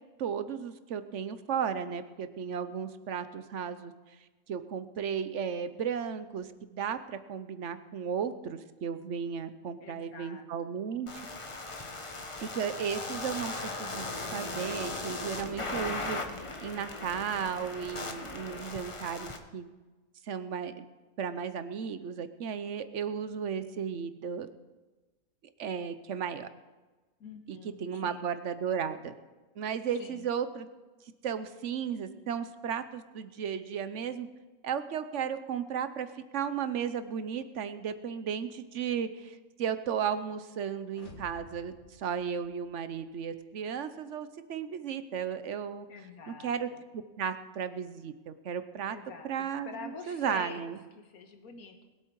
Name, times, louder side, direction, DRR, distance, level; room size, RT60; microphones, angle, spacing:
voice 1, 0.2-3.9 4.5-11.2 12.4-19.7 20.2-20.8 21.2-24.5 25.6-26.5 27.5-29.1 29.6-30.7 31.2-34.3 34.6-45.9 46.3-46.7 47.2-49.0 49.2-50.8, right 7 dB, 60° right, 11 dB, 1.1 m, -35 dB
voice 2, 9.8-10.5 27.2-28.3 30.0-30.3 45.9-46.8 48.9-50.7 51.0-51.8, left 4 dB, 75° left, 6 dB, 1.8 m, -46 dB
sound 1, 11.1-19.4, left 2 dB, 25° left, 1.0 m, -38 dB
sound 2, 40.9-43.0, left 1 dB, 50° left, 2.0 m, -53 dB
21.0 x 8.2 x 4.7 m, 1.2 s
omnidirectional pair, 1.5 m